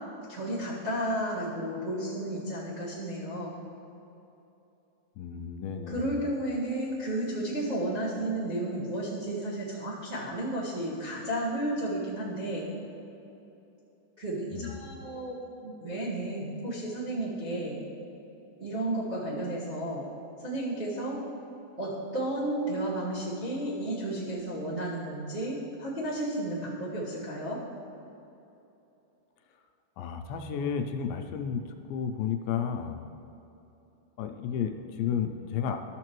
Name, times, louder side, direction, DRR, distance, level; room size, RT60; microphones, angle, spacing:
voice 1, 0.3-3.6 5.9-12.7 14.2-17.8 18.6-20.1 20.4-21.2 21.8-27.6, right 1 dB, 50° right, -12 dB, 0.8 m, -32 dB
voice 2, 5.2-6.2 14.5-14.8 30.0-33.0 34.2-35.8, left 7 dB, 80° left, 6 dB, 2.2 m, -32 dB
13.5 x 6.6 x 3.1 m, 2.9 s
omnidirectional pair, 4.2 m